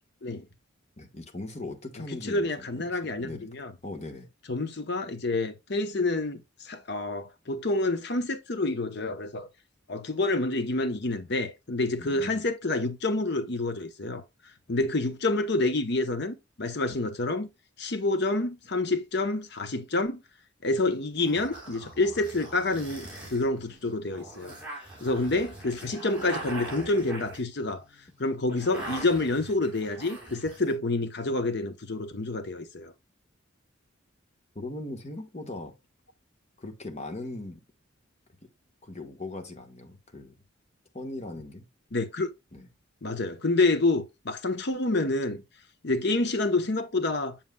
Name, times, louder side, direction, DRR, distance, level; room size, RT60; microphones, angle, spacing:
voice 1, 1.0-2.5 2.8-3.5 3.8-4.3 12.0-12.4 34.5-35.7 36.6-37.6 38.8-40.3 40.9-41.6 42.5-42.7, left 2 dB, 35° left, 1.3 m, -39 dB
voice 2, 2.2-3.7 4.5-9.5 9.9-14.2 14.7-17.5 17.8-20.2 20.6-24.5 25.0-27.8 28.2-32.9 41.9-42.3 43.0-45.4 45.8-47.4, left 2 dB, 55° left, 0.9 m, -28 dB
sound 1, 20.7-30.7, right 2 dB, 5° right, 3.4 m, -42 dB
7.3 x 7.2 x 2.3 m
head